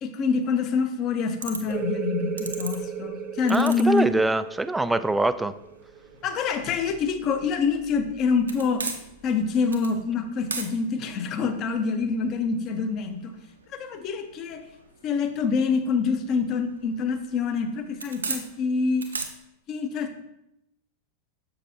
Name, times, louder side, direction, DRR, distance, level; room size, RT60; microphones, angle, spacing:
voice 1, 0.0-4.1 6.2-8.9 9.2-13.3 13.7-14.6 15.0-19.1 19.7-20.2, left 5 dB, 35° left, 8 dB, 0.8 m, -26 dB
sound 1, 1.4-19.2, right 4 dB, 75° right, 0.8 m, -41 dB
sound 2, 1.7-7.0, right 8 dB, 30° right, 0.8 m, -35 dB
voice 2, 3.5-5.5, right 2 dB, 5° right, 13 dB, 0.3 m, -23 dB
7.1 x 6.7 x 2.8 m, 0.84 s
figure-of-eight pair, 90°, 0 cm